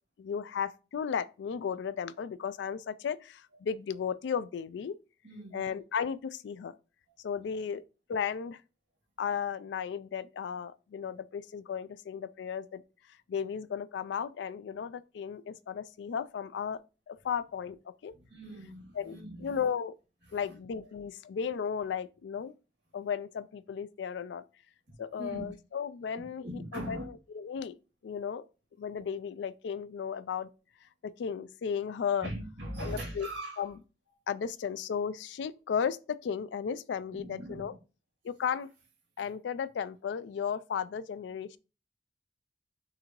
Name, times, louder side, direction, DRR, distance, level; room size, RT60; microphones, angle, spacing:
voice 1, 0.2-5.0 5.5-6.7 7.2-7.8 8.1-8.6 9.2-12.8 13.3-18.1 18.9-19.9 20.3-22.5 22.9-24.4 25.0-27.0 27.3-27.8 28.0-28.4 28.8-30.5 31.0-32.3 32.8-33.3 33.6-33.7 34.3-37.7 38.2-38.7 39.2-41.6, left 7 dB, 75° left, 0.3 m, -35 dB
voice 2, 5.2-5.7 7.7-7.8 18.1-19.6 20.3-20.6 24.9-25.5 26.4-27.1 32.2-33.7 37.1-37.8 39.2-39.3, right 1 dB, 65° right, 2.3 m, -41 dB
6.5 x 2.6 x 2.9 m
head